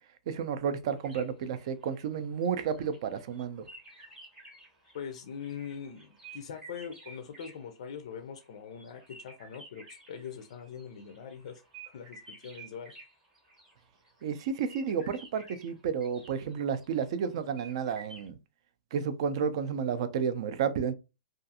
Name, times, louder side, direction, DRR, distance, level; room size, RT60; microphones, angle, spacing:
voice 1, 0.3-3.6 14.2-18.4 18.9-20.9, right 7 dB, 45° right, 0.4 m, -31 dB
sound 1, 1.0-8.1 8.4-18.3, right 3 dB, 10° right, 0.8 m, -53 dB
voice 2, 4.9-12.9, left 7 dB, 55° left, 0.4 m, -42 dB
2.4 x 2.4 x 2.7 m
hypercardioid pair, 160°, 4 cm